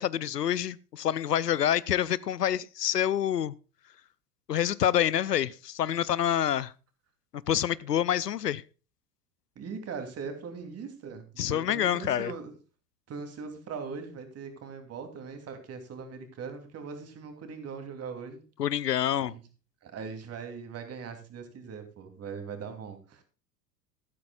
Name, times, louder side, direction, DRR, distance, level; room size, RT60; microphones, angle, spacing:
voice 1, 0.0-3.6 4.5-6.7 7.5-8.6 11.4-12.3 18.6-19.3, left 10 dB, 80° left, 0.6 m, -27 dB
voice 2, 9.6-12.5 13.1-18.4 19.3-19.4 19.8-23.2, right 5 dB, 30° right, 2.9 m, -40 dB
13.5 x 13.0 x 2.3 m
figure-of-eight pair, 80°, 48 cm